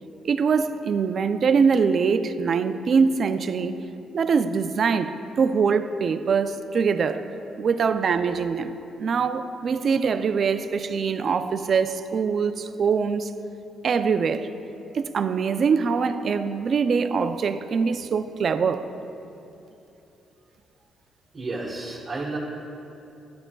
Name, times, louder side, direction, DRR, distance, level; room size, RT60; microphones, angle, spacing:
voice 1, 0.2-3.8 4.1-7.3 7.6-8.7 9.0-13.3 13.8-14.5 14.9-18.9, right 5 dB, 50° right, 0.4 m, -23 dB
voice 2, 21.3-22.4, right 3 dB, 35° right, 1.4 m, -31 dB
12.0 x 11.0 x 2.3 m
cardioid pair, 90°, 0 cm